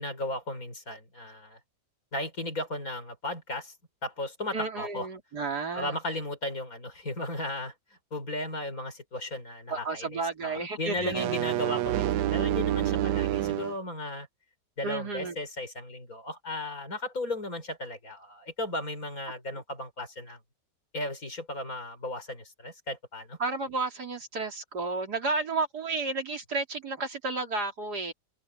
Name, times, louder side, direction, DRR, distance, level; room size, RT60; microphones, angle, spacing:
voice 1, 0.0-1.6 2.1-3.7 4.0-5.1 5.7-7.7 8.1-14.3 14.8-20.4 20.9-23.4, left 1 dB, 50° left, 5.5 m, -35 dB
voice 2, 4.5-6.0 9.7-11.3 14.8-15.4 23.4-28.1, right 3 dB, 65° right, 3.6 m, -32 dB
sound 1, 11.0-13.8, right 13 dB, 80° right, 1.3 m, -28 dB
open air
omnidirectional pair, 1.9 m